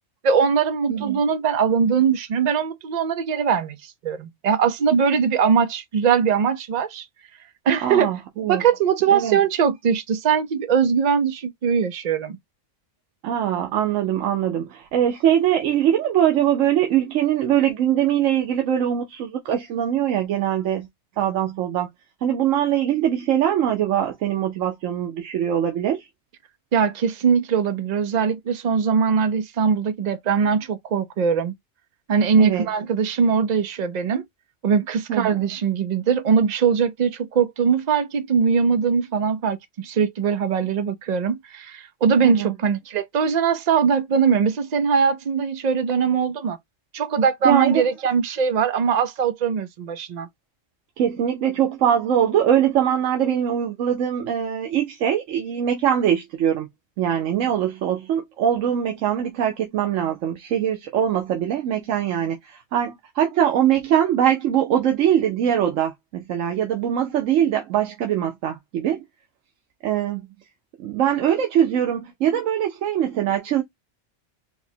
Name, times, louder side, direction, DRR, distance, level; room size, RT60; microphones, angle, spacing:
voice 1, 0.2-3.8 4.0-7.0 7.7-8.1 8.5-12.4 26.7-31.5 32.1-34.2 34.6-46.6 46.9-50.3, right 6 dB, 65° right, 0.4 m, -21 dB
voice 2, 0.9-1.2 7.8-8.6 9.1-9.4 13.2-20.9 21.2-21.9 22.2-26.1 32.4-32.6 35.1-35.4 42.2-42.5 47.4-47.8 51.0-56.7 57.0-69.0 69.8-70.3 70.8-73.6, right 10 dB, 90° right, 1.0 m, -22 dB
4.8 x 2.1 x 2.7 m
omnidirectional pair, 1.3 m